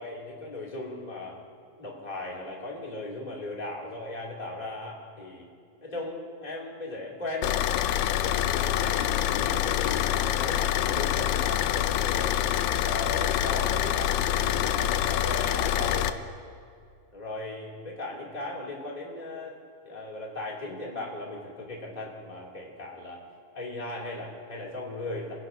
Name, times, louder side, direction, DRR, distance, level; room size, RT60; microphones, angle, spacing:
voice 1, 0.0-1.4 1.8-5.4 5.8-7.6 8.2-12.4 12.8-16.2 17.1-19.6 19.8-23.2 23.5-25.3, left 2 dB, 15° left, -4 dB, 1.7 m, -37 dB
Car / Idling, 7.4-16.1, left 12 dB, 80° left, 2.1 m, -26 dB
27.5 x 16.0 x 2.7 m, 2.2 s
omnidirectional pair, 4.4 m